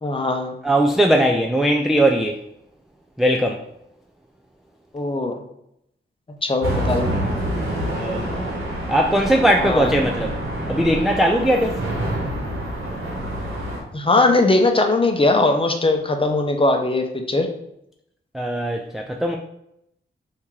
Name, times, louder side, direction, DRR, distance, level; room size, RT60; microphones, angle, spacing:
voice 1, 0.0-0.6 4.9-5.4 6.4-7.2 9.6-10.1 13.9-17.5, left 2 dB, 25° left, 4 dB, 0.8 m, -20 dB
voice 2, 0.6-2.4 3.2-3.6 7.9-8.2 8.9-10.3 10.7-11.8 18.3-19.4, right 1 dB, ahead, 2 dB, 0.4 m, -19 dB
sound 1, 6.6-13.8, right 1 dB, 90° right, 1.1 m, -26 dB
3.5 x 2.8 x 4.7 m, 0.79 s
cardioid pair, 55°, 21 cm